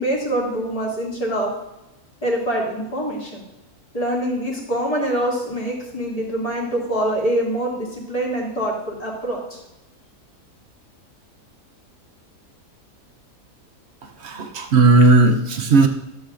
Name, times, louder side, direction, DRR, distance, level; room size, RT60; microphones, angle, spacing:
voice 1, 0.0-1.5 2.2-3.4 3.9-9.6, right 1 dB, 25° left, -4 dB, 2.2 m, -24 dB
voice 2, 14.2-15.9, right 3 dB, 55° right, 5 dB, 0.8 m, -15 dB
12.5 x 7.4 x 2.5 m, 0.97 s
omnidirectional pair, 1.7 m